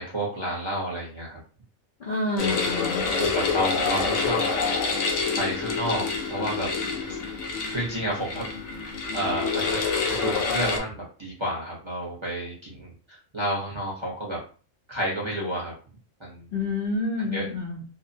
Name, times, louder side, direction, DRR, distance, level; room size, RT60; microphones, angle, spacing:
voice 1, 0.0-1.4 2.4-2.5 3.1-4.4 5.4-6.7 7.7-8.4 9.1-9.8 10.1-12.9 13.3-14.4 14.9-15.7 16.2-16.5 17.3-17.5, right 1 dB, 30° right, -5 dB, 0.6 m, -30 dB
voice 2, 2.0-3.2 16.5-17.8, left 3 dB, 60° left, -3 dB, 0.6 m, -28 dB
sound 1, 2.4-10.8, left 4 dB, 75° left, 0.9 m, -27 dB
2.6 x 2.0 x 2.6 m, 0.38 s
omnidirectional pair, 1.3 m